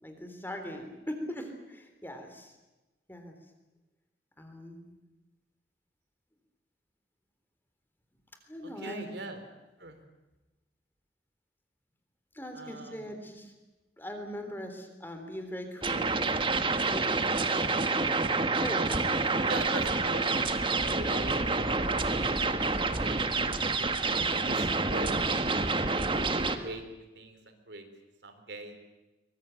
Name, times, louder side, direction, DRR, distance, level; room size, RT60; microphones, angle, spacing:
voice 1, 0.0-2.6 3.1-3.3 4.4-5.0 8.5-9.1 12.3-13.5 14.0-16.4 16.7-19.3, equal, 10° left, 6 dB, 3.5 m, -41 dB
voice 2, 8.6-9.4 9.8-10.0 12.5-13.1 19.5-23.4 24.4-25.8 26.5-27.9 28.2-28.8, right 2 dB, 75° right, 7 dB, 3.7 m, -42 dB
sound 1, 15.8-26.6, right 3 dB, 30° right, 1.5 m, -28 dB
23.5 x 21.0 x 9.2 m, 1.1 s
head